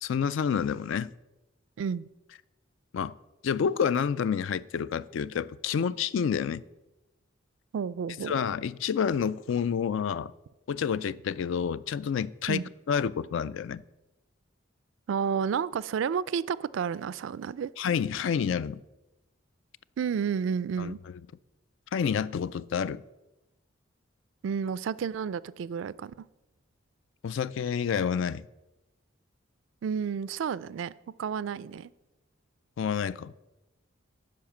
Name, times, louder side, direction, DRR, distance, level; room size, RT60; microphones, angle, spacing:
voice 1, 0.0-1.1 2.9-3.1 3.4-6.6 8.3-10.3 10.7-13.8 17.8-18.8 20.8-20.9 21.9-23.0 27.2-28.4 32.8-33.3, left 7 dB, 65° left, 0.3 m, -29 dB
voice 2, 1.8-2.1 7.7-8.4 12.5-12.6 15.1-17.7 20.0-21.0 24.4-26.2 29.8-30.9 31.2-31.9, right 7 dB, 70° right, 0.3 m, -31 dB
10.5 x 4.8 x 7.2 m
head